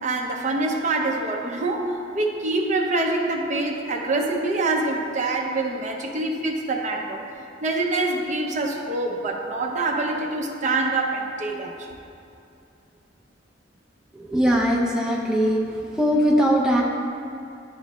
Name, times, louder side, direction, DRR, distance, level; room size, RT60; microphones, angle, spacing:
voice 1, 0.0-7.2 7.6-11.9, right 2 dB, 45° right, 1 dB, 0.6 m, -25 dB
voice 2, 14.3-15.6 16.0-16.8, equal, 5° right, -3 dB, 0.4 m, -20 dB
11.0 x 4.0 x 3.1 m, 2.6 s
head